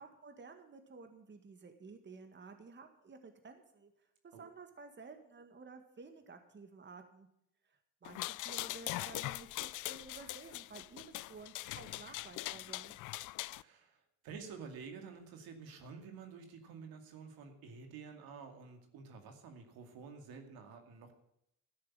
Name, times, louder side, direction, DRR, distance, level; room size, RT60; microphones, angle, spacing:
voice 1, 0.0-3.9 4.2-7.3 7.6-12.9, right 4 dB, 30° right, 7 dB, 1.8 m, -53 dB
sound 1, 8.0-13.6, left 17 dB, 55° left, 0.4 m, -42 dB
voice 2, 13.5-21.1, right 5 dB, 70° right, 5 dB, 2.4 m, -50 dB
13.0 x 6.6 x 9.7 m, 0.77 s
supercardioid pair, 80°, 37 cm